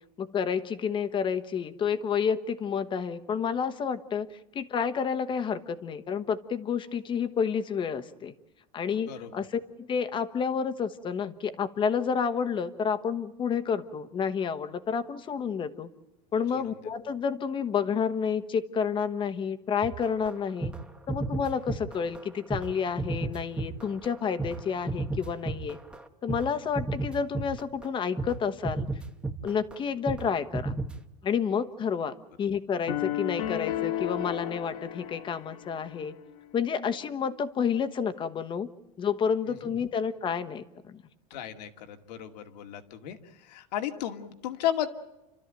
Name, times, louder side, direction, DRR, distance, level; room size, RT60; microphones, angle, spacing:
voice 1, 0.2-4.3 4.5-8.3 8.7-15.9 16.3-20.7 21.1-25.8 26.2-28.9 29.4-30.8 31.2-36.1 36.5-38.7 39.0-41.0, left 6 dB, 25° left, 9 dB, 1.2 m, -30 dB
voice 2, 9.1-9.5 16.5-16.6 39.5-39.7 41.3-44.9, left 10 dB, 85° left, 7 dB, 2.3 m, -34 dB
sound 1, 19.8-26.5 26.8-27.9 28.2-28.4 28.6-29.8 30.1-30.3 30.5-31.0, right 3 dB, 5° right, 1.0 m, -33 dB
sound 2, 32.9-36.1, left 12 dB, 65° left, 1.7 m, -33 dB
29.5 x 13.0 x 9.1 m, 0.97 s
supercardioid pair, 155°, 21 cm